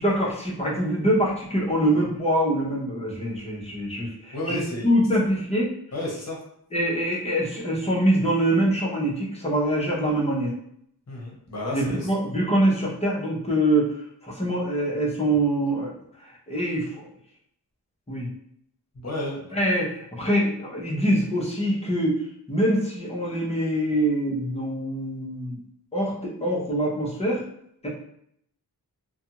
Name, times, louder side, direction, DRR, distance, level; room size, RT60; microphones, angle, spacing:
voice 1, 0.0-5.7 6.7-10.5 11.7-13.9 14.2-15.9 16.5-17.0 18.1-18.3 19.5-25.6 25.9-27.4 27.8-27.9, right 1 dB, 15° left, -4 dB, 0.8 m, -24 dB
voice 2, 4.3-4.9 5.9-6.4 11.1-12.1 18.9-19.5, left 1 dB, 45° left, -3 dB, 1.0 m, -32 dB
2.5 x 2.3 x 2.9 m, 0.70 s
wide cardioid pair, 110°, 38 cm